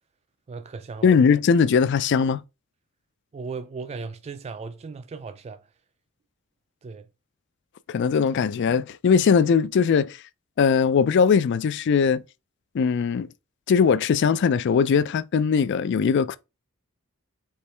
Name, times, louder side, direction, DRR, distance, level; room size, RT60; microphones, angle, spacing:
voice 1, 0.5-1.1 3.3-5.6 6.8-7.1, right 4 dB, 30° right, 0.3 m, -36 dB
voice 2, 1.0-2.4 7.9-10.2 10.6-12.2 12.7-13.3 13.7-16.4, left 6 dB, 55° left, 0.3 m, -20 dB
4.4 x 3.1 x 3.3 m
head